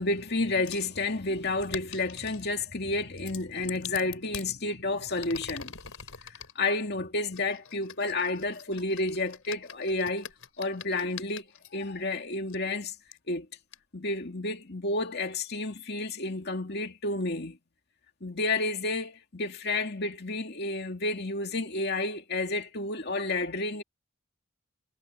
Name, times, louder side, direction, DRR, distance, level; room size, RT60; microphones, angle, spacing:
voice 1, 0.0-5.7 6.2-10.3 10.6-11.5 11.7-12.9 13.3-13.5 13.9-17.6 18.2-23.8, left 2 dB, 50° left, 2.5 m, -31 dB
sound 1, 0.7-0.9 1.6-2.5 3.2-4.5 5.1-6.5 7.3-11.7 12.5-12.6 13.1-13.2 13.7-13.8, left 8 dB, 85° left, 4.2 m, -44 dB
head